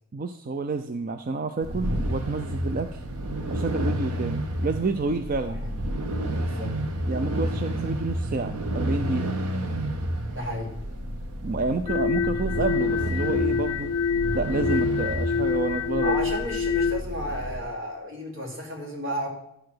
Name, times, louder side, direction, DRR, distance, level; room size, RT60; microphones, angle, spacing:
voice 1, 0.1-3.0 3.5-5.6 7.1-9.3 11.4-13.9 14.3-16.1, right 3 dB, 40° right, 7 dB, 0.4 m, -29 dB
sound 1, 1.6-17.6, right 1 dB, 85° right, 1.0 m, -30 dB
voice 2, 6.4-6.8 10.3-10.7 16.0-19.3, equal, 60° right, -1 dB, 2.6 m, -32 dB
sound 2, 11.9-17.0, left 6 dB, 75° left, 0.4 m, -26 dB
11.5 x 4.8 x 6.2 m, 0.75 s
head